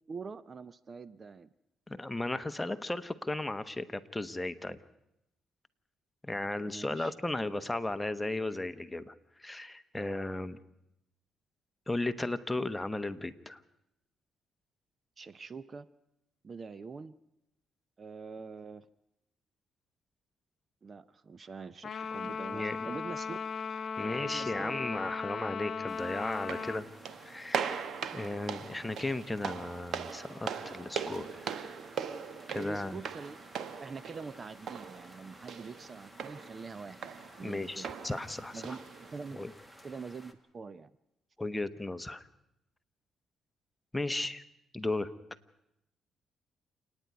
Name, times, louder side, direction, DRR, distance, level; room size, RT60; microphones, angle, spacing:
voice 1, 0.1-1.5 6.6-7.1 15.2-15.9 16.4-17.1 18.0-18.9 20.8-23.4 24.2-24.8 32.5-33.4 33.8-37.1 37.4-37.9 38.5-38.9 39.1-39.4 39.8-40.9, right 4 dB, 40° right, 17 dB, 0.6 m, -44 dB
voice 2, 1.9-4.8 6.2-9.1 9.4-10.6 11.9-13.6 22.5-22.9 24.0-26.8 27.2-31.5 32.5-33.0 37.4-38.8 39.3-39.5 41.4-42.3 43.9-44.4 44.7-45.1, left 2 dB, 10° left, 10 dB, 1.0 m, -35 dB
Trumpet, 21.8-26.8, left 6 dB, 45° left, 0.9 m, -37 dB
sound 1, 25.9-40.3, equal, 10° right, 1.8 m, -55 dB
sound 2, 26.3-39.4, right 7 dB, 65° right, 1.2 m, -40 dB
28.5 x 9.9 x 9.4 m, 0.85 s
cardioid pair, 90°, 0 cm